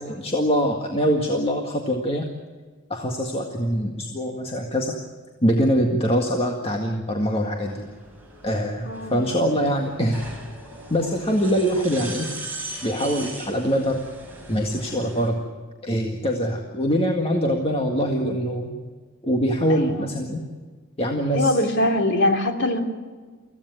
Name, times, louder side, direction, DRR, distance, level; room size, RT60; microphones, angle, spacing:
voice 1, 0.0-2.3 2.9-4.9 5.4-7.9 8.4-10.2 10.9-12.3 12.8-14.0 14.5-15.4 15.8-18.7 19.2-20.4 21.0-21.5, equal, 30° left, 2 dB, 1.9 m, -23 dB
sound 1, 7.6-15.3, right 2 dB, 10° right, 5.8 m, -39 dB
voice 2, 8.8-9.2 19.7-20.1 21.3-22.8, left 1 dB, 60° left, 4 dB, 2.9 m, -22 dB
25.0 x 16.0 x 9.4 m, 1.5 s
head